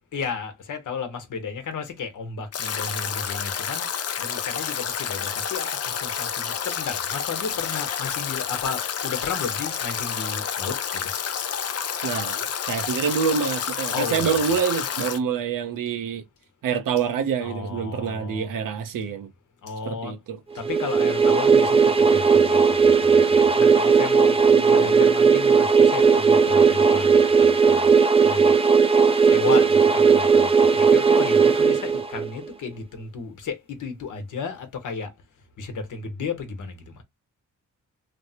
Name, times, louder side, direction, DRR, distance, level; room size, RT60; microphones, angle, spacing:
voice 1, 0.1-3.9 4.2-11.1 13.9-14.4 17.4-18.5 19.6-20.2 20.5-27.9 28.2-28.5 29.2-35.1 35.6-37.0, left 5 dB, 75° left, 1.1 m, -33 dB
Stream / Drip / Trickle dribble, 2.5-15.2, left 8 dB, 50° left, 0.5 m, -29 dB
voice 2, 12.0-16.2 16.6-19.3 19.9-20.4 24.5-24.9, right 7 dB, 90° right, 0.8 m, -26 dB
sound 1, 20.6-32.5, right 5 dB, 20° right, 0.4 m, -17 dB
3.1 x 2.1 x 2.8 m
cardioid pair, 105°, 32 cm